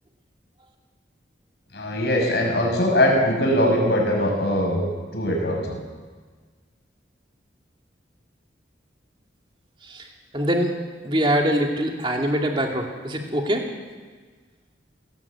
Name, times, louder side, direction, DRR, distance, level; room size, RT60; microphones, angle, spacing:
voice 1, 1.7-4.8 5.1-5.8, left 1 dB, 65° left, 0 dB, 6.2 m, -21 dB
voice 2, 9.8-10.8 11.0-13.7, equal, 30° right, 2 dB, 2.5 m, -24 dB
19.0 x 18.0 x 8.6 m, 1.5 s
head